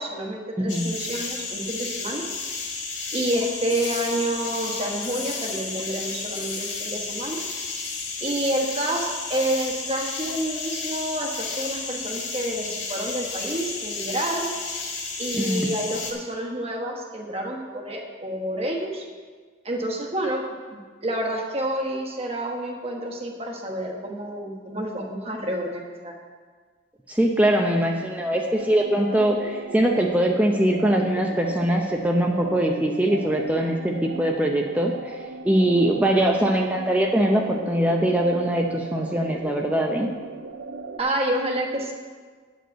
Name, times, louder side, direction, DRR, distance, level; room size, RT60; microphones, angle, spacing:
voice 1, 0.0-2.2 3.1-7.4 8.2-14.5 15.2-19.1 19.6-20.4 20.7-26.1 41.0-41.9, right 1 dB, 30° right, 1 dB, 1.2 m, -29 dB
voice 2, 0.6-0.9 15.3-15.7 27.1-40.1, right 1 dB, 10° right, 0 dB, 0.6 m, -22 dB
sound 1, 0.7-16.1, left 4 dB, 70° left, 1.7 m, -32 dB
sound 2, 28.5-41.0, right 3 dB, 60° right, 0.5 m, -37 dB
9.5 x 5.2 x 7.7 m, 1.6 s
head